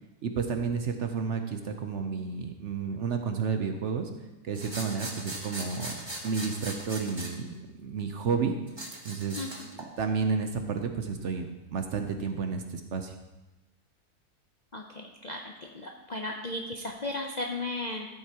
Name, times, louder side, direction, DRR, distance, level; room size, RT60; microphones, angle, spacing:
voice 1, 0.2-4.1 4.4-5.9 6.2-8.6 9.0-9.4 9.7-13.1, right 5 dB, 60° right, 6 dB, 0.9 m, -31 dB
sound 1, 4.5-7.3 8.7-9.9, right 1 dB, 20° right, 1.1 m, -39 dB
voice 2, 14.7-15.4 15.7-18.1, left 2 dB, 45° left, 1 dB, 0.5 m, -35 dB
13.5 x 7.8 x 2.9 m, 1.1 s
omnidirectional pair, 1.6 m